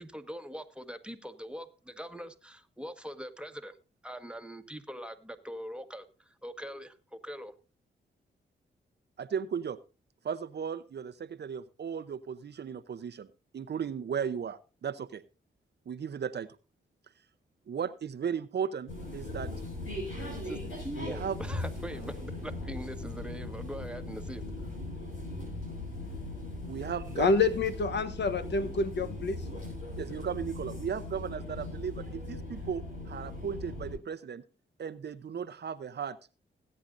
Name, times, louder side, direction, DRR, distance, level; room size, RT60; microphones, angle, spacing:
voice 1, 0.0-3.8 4.0-7.5 20.4-24.4, equal, 5° right, 1.4 m, -42 dB
voice 2, 9.2-9.8 10.2-13.3 13.5-15.2 15.9-16.5 17.7-19.5 21.0-21.4 26.7-27.3 30.0-34.4 34.8-36.2, right 7 dB, 55° right, 0.7 m, -36 dB
sound 1, 18.9-33.9, left 2 dB, 90° left, 5.9 m, -39 dB
voice 3, 27.1-29.4, left 3 dB, 60° left, 1.0 m, -27 dB
20.0 x 8.7 x 2.6 m
supercardioid pair, 50°, 20 cm